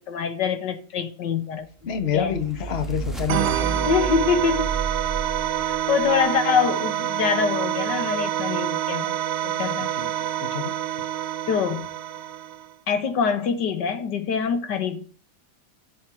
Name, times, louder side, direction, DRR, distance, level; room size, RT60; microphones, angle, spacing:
voice 1, 0.1-2.4 3.8-4.8 5.6-9.2 9.4-9.9 11.5-11.9 12.9-15.0, left 6 dB, 75° left, 1.8 m, -25 dB
voice 2, 1.9-3.9 10.0-10.1 10.4-10.7, left 8 dB, 40° left, 1.2 m, -27 dB
sound 1, 1.9-6.1, right 5 dB, ahead, 1.4 m, -32 dB
sound 2, 3.3-12.7, right 12 dB, 90° right, 0.5 m, -27 dB
7.9 x 6.4 x 7.9 m
omnidirectional pair, 1.9 m